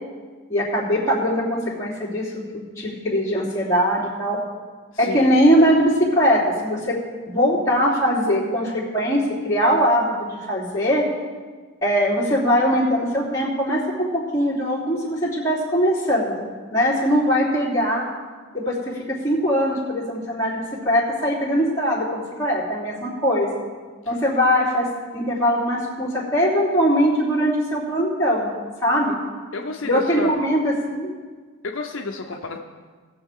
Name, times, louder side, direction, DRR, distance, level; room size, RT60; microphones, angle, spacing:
voice 1, 0.5-4.4 5.0-6.9 7.2-11.0 11.8-18.0 18.6-18.8 19.2-20.6 20.8-23.5 24.1-24.9 25.1-28.5 28.8-29.2 29.8-31.1, equal, 15° left, -8 dB, 3.1 m, -21 dB
voice 2, 4.9-5.4 24.0-24.2 29.5-30.4 31.6-32.6, left 3 dB, 60° left, 2 dB, 0.7 m, -31 dB
19.0 x 7.1 x 3.7 m, 1.5 s
head